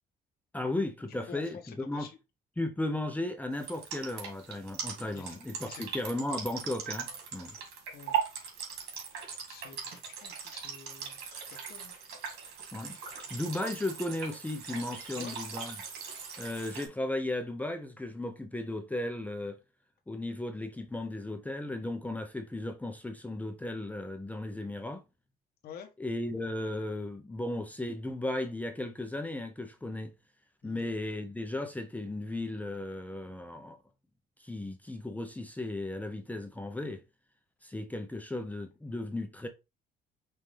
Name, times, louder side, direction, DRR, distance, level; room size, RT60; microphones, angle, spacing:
voice 1, 0.5-2.1 2.6-7.5 12.7-13.0 13.3-15.7 16.4-19.6 20.1-25.0 26.0-30.1 30.6-33.8 34.4-37.0 37.6-39.5, left 2 dB, 10° left, 0.7 m, -35 dB
voice 2, 1.1-2.2 5.1-5.4 5.6-5.8 7.9-8.1 9.5-11.9 12.2-12.3 15.1-15.4 25.6-25.9 30.6-30.8, left 7 dB, 65° left, 1.1 m, -48 dB
sound 1, 3.6-16.9, right 7 dB, 80° right, 2.1 m, -39 dB
5.8 x 2.7 x 3.2 m
cardioid pair, 110°, 17 cm